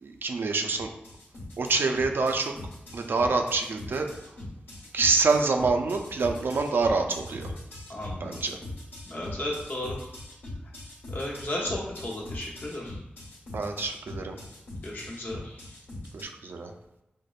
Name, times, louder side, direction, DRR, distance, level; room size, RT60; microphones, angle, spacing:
voice 1, 0.0-0.9 1.6-2.5 2.9-4.1 4.9-7.5 8.2-8.6 13.5-14.4 16.1-16.7, right 4 dB, 75° right, 5 dB, 0.4 m, -26 dB
sound 1, 0.7-16.2, left 1 dB, 90° left, 1.2 m, -42 dB
voice 2, 7.9-8.5 9.0-10.1 11.1-13.0 14.8-15.8, left 1 dB, 55° left, -4 dB, 1.0 m, -34 dB
5.0 x 2.0 x 2.4 m, 0.90 s
cardioid pair, 60°, 4 cm